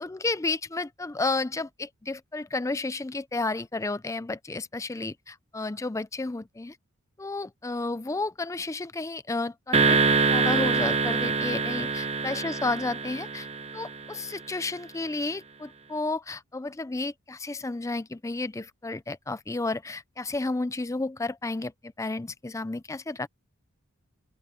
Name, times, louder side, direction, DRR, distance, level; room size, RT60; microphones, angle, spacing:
voice 1, 0.0-6.8 7.2-10.0 10.3-13.5 13.7-23.3, left 3 dB, 15° left, 0.4 m, -32 dB
sound 1, 9.7-14.2, right 4 dB, 30° right, 0.9 m, -25 dB
open air
head